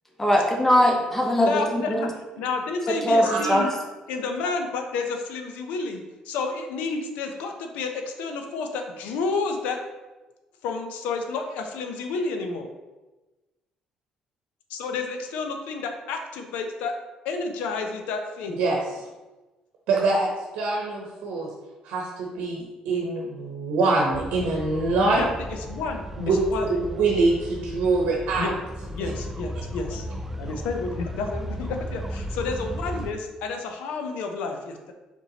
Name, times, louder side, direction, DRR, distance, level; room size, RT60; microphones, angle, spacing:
voice 1, 0.2-2.1 3.0-3.6, equal, 15° left, 0 dB, 1.0 m, -21 dB
voice 2, 1.4-3.7 4.1-9.8 10.6-12.7 14.7-16.9 17.2-18.6 25.2-25.3 25.7-26.0 26.5-26.7 28.4-28.6 28.9-30.0 30.4-34.9, left 4 dB, 90° left, 5 dB, 0.5 m, -30 dB
voice 3, 3.2-3.7 18.5-19.0 19.9-21.5 21.8-25.2 26.2-26.4 26.6-28.5, right 3 dB, 85° right, -2 dB, 0.8 m, -24 dB
sound 1, 24.1-33.1, equal, 10° right, 0.3 m, -35 dB
4.4 x 4.1 x 2.8 m, 1.1 s
cardioid pair, 85°, 2 cm